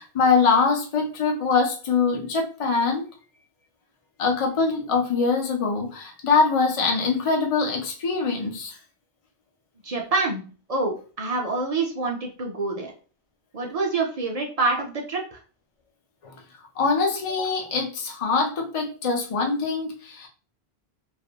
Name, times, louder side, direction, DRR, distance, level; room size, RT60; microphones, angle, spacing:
voice 1, 0.0-3.1 4.2-8.8 16.2-16.3 16.8-20.3, left 4 dB, 45° left, 0.5 m, -23 dB
voice 2, 9.8-10.4 10.7-12.9 13.5-15.4, right 3 dB, 50° right, 0.5 m, -26 dB
2.4 x 2.1 x 2.7 m
omnidirectional pair, 1.1 m